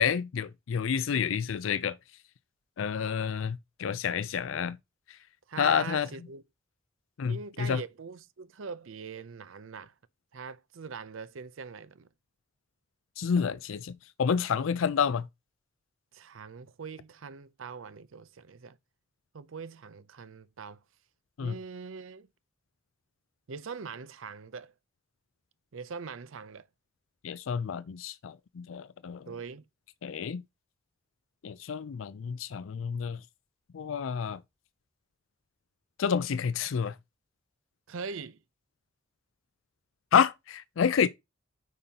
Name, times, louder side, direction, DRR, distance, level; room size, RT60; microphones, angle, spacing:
voice 1, 0.0-2.0 2.8-4.8 5.6-6.1 7.2-7.8 13.2-15.3 21.4-21.6 27.2-29.3 30.0-30.4 31.4-33.2 33.7-34.4 36.0-36.9 40.1-41.1, left 7 dB, 85° left, 0.4 m, -29 dB
voice 2, 5.5-6.4 7.3-9.9 10.3-12.1 16.1-18.8 19.3-20.8 21.4-22.3 23.5-24.7 25.7-26.7 29.3-29.6 37.9-38.4, right 5 dB, 85° right, 0.6 m, -42 dB
9.2 x 5.4 x 2.8 m
head